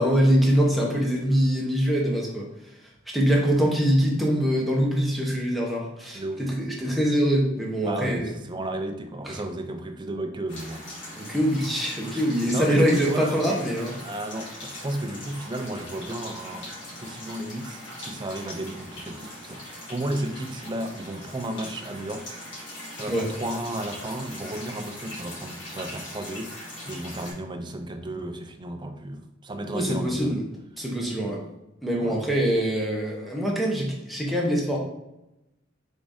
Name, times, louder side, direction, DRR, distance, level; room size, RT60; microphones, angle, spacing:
voice 1, 0.0-2.5 3.1-8.3 9.2-9.4 11.2-13.9 23.1-23.3 29.7-30.4 30.8-31.4 31.8-34.8, equal, ahead, -3 dB, 0.9 m, -24 dB
voice 2, 7.8-10.9 12.1-13.6 14.0-22.4 23.0-30.4 32.0-32.2, right 1 dB, 25° right, 6 dB, 0.4 m, -33 dB
sound 1, 10.5-27.3, left 1 dB, 65° left, 1.4 m, -40 dB
5.1 x 3.6 x 2.6 m, 0.93 s
head